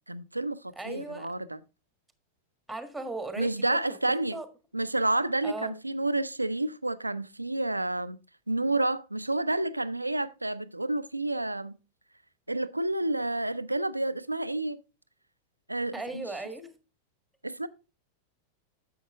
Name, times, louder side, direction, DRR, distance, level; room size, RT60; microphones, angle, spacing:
voice 1, 0.1-1.6 3.4-4.4 4.7-8.2 8.5-11.8 12.5-14.8 15.7-16.2 17.4-17.7, right 2 dB, 85° right, 0.5 m, -29 dB
voice 2, 0.7-1.3 2.7-3.8 4.3-4.5 5.4-5.8 15.9-16.7, right 2 dB, 5° right, 1.5 m, -37 dB
10.5 x 7.2 x 3.4 m
figure-of-eight pair, 90°, 0 cm